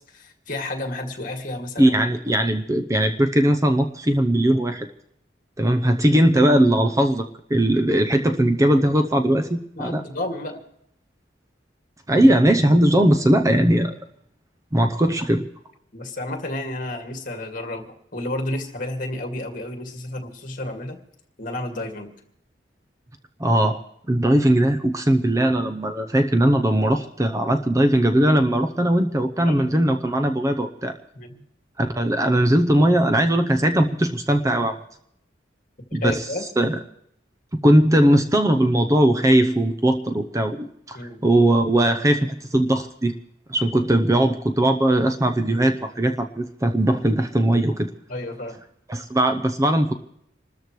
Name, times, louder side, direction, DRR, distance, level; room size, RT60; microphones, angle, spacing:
voice 1, 0.1-1.9 9.8-10.6 15.9-21.0 21.4-22.1 29.5-29.8 31.1-31.4 35.9-36.5 40.9-41.2 48.1-48.6, left 1 dB, 45° left, 4 dB, 2.2 m, -31 dB
voice 2, 1.8-4.9 5.6-10.0 12.1-13.9 14.7-15.4 23.4-23.8 24.1-31.0 31.8-34.8 35.9-36.2 36.6-36.8 37.6-43.1 43.5-47.9 48.9-49.9, right 1 dB, 15° right, 7 dB, 0.7 m, -19 dB
27.5 x 13.5 x 3.2 m, 0.74 s
head